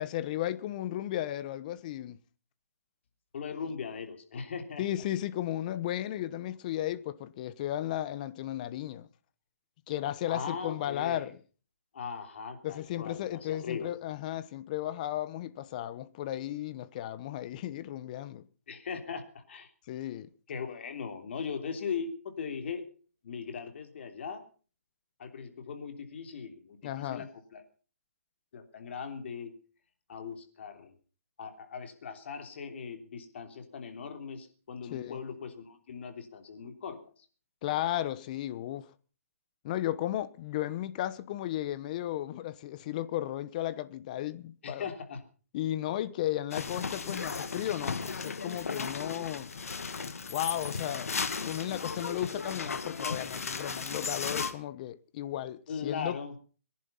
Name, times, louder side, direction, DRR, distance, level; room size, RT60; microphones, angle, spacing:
voice 1, 0.0-2.2 4.8-9.1 9.9-11.3 12.6-18.4 19.9-20.3 26.8-27.3 34.9-35.2 37.6-38.9 39.6-44.8 45.5-49.5 50.3-51.1 51.5-56.2, left 13 dB, 30° left, 1.1 m, -34 dB
voice 2, 3.3-4.8 10.3-11.3 11.9-13.9 18.7-19.7 20.5-22.8 23.2-24.4 25.2-27.6 28.5-29.5 30.1-31.0 31.4-37.2 44.6-45.2 55.7-56.4, left 6 dB, 50° left, 3.2 m, -39 dB
sound 1, 46.5-54.5, left 5 dB, 75° left, 2.2 m, -35 dB
23.0 x 11.0 x 5.7 m
hypercardioid pair, 155°, 8 cm